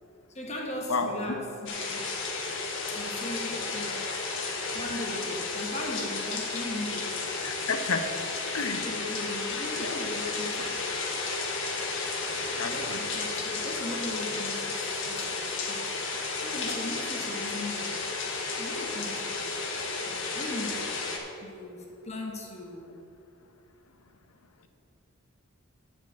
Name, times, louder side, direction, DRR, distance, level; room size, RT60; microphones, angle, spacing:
voice 1, 0.3-2.1 2.9-4.1 4.7-7.3 8.7-10.8 12.6-18.0 18.3-19.5 19.9-21.0 21.4-23.0, left 1 dB, 30° left, 0 dB, 1.2 m, -38 dB
voice 2, 0.9-1.4 7.4-8.1 8.5-8.8 9.8-10.0 12.6-13.1, left 4 dB, 90° left, 7 dB, 0.9 m, -31 dB
sound 1, 1.7-21.2, left 3 dB, 65° left, 1.4 m, -33 dB
10.5 x 4.7 x 8.1 m, 2.6 s
head